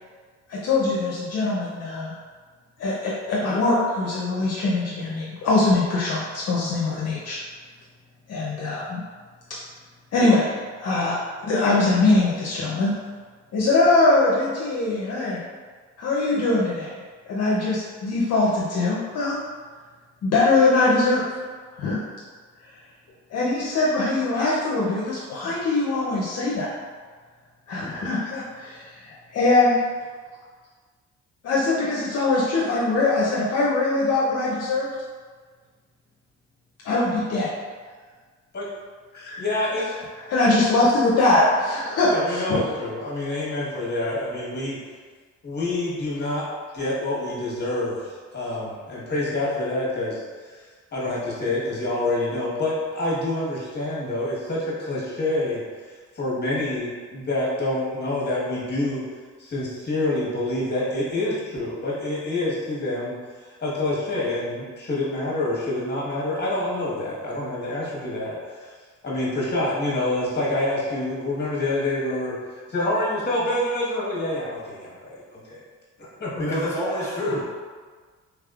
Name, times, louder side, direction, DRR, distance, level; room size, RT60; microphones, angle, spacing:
voice 1, 0.5-2.1 2.8-7.4 8.3-9.0 10.1-10.5 10.8-11.2 11.4-12.9 13.5-15.4 16.0-16.9 17.3-19.4 20.2-21.3 21.8-22.0 23.3-26.7 27.7-29.8 31.4-34.9 36.8-37.5 40.3-42.6, left 2 dB, 55° left, -5 dB, 0.7 m, -22 dB
voice 2, 39.1-39.9 42.1-44.8 45.4-46.4 46.7-50.5 50.9-55.6 56.1-59.0 59.4-68.7 69.0-72.4 72.7-75.6 76.2-76.7, left 1 dB, 35° left, -6 dB, 1.3 m, -27 dB
voice 3, 76.4-77.4, equal, 10° left, -7 dB, 1.3 m, -27 dB
3.4 x 3.4 x 2.4 m, 1.5 s
cardioid pair, 90°, 30 cm